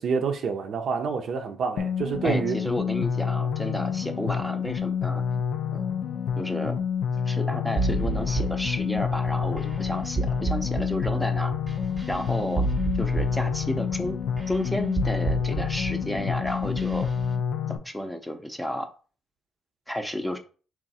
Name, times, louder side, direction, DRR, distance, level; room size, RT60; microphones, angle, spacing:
voice 1, 0.0-2.6, right 5 dB, 60° right, 0.6 m, -27 dB
sound 1, 1.8-17.8, left 7 dB, 80° left, 0.5 m, -28 dB
voice 2, 2.2-5.2 5.7-5.9 6.4-6.8 7.3-11.5 12.1-12.6 13.0-14.2 14.5-17.1 17.7-18.9 19.9-20.4, equal, 5° left, 0.6 m, -31 dB
sound 2, 7.8-17.3, right 3 dB, 25° right, 0.9 m, -31 dB
3.7 x 2.5 x 4.1 m
cardioid pair, 90°, 0 cm